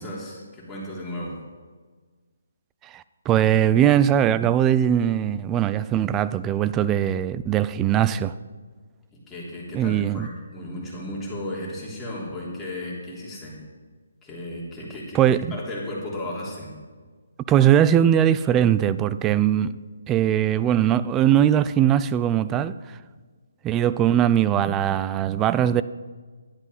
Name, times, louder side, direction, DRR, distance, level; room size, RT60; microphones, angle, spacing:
voice 1, 0.0-1.4 9.1-13.6 14.2-15.2 15.5-16.7, left 1 dB, 10° left, 3.3 m, -34 dB
voice 2, 2.8-8.3 9.7-10.3 15.1-15.6 17.5-19.8 20.1-22.8 23.6-25.8, right 10 dB, 15° right, 0.3 m, -20 dB
11.5 x 9.8 x 5.5 m
hypercardioid pair, 150°, 0 cm